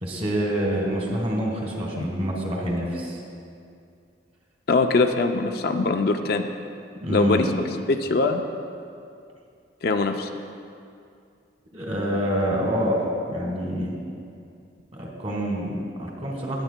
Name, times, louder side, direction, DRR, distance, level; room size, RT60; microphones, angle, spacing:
voice 1, 0.0-3.2 7.0-7.5 11.7-14.0 14.9-16.6, equal, 35° right, -1 dB, 1.5 m, -26 dB
voice 2, 4.7-6.5 7.1-7.5 7.9-8.4 9.8-10.3, left 3 dB, 55° left, 5 dB, 0.4 m, -22 dB
19.0 x 8.0 x 2.2 m, 2.4 s
head